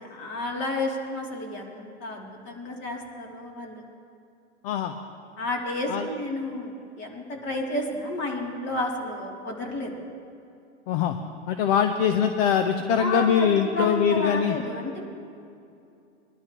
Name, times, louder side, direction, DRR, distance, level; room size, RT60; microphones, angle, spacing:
voice 1, 0.1-3.8 5.4-9.9 13.0-15.0, left 1 dB, 30° left, -1 dB, 2.9 m, -31 dB
voice 2, 10.9-11.2 11.5-14.6, left 8 dB, 50° left, 7 dB, 0.9 m, -23 dB
22.0 x 12.0 x 3.0 m, 2.5 s
hypercardioid pair, 125°, 36 cm